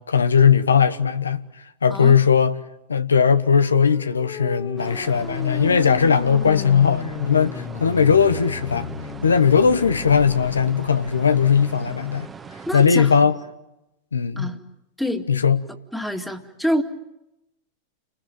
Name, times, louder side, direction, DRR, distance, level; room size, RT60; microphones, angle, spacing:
voice 1, 0.0-1.4 1.8-2.5 2.9-8.9 9.2-12.3 12.7-13.3 14.1-14.5 15.3-15.6, left 6 dB, 90° left, 1.1 m, -18 dB
sound 1, 3.6-10.7, left 8 dB, 50° left, 2.2 m, -34 dB
sound 2, 4.8-12.9, right 5 dB, 20° right, 1.5 m, -40 dB
voice 2, 12.7-13.3 14.4-14.6 15.0-15.3 15.9-16.8, equal, 5° left, 2.2 m, -26 dB
30.0 x 20.5 x 9.3 m
hypercardioid pair, 95°, 0 cm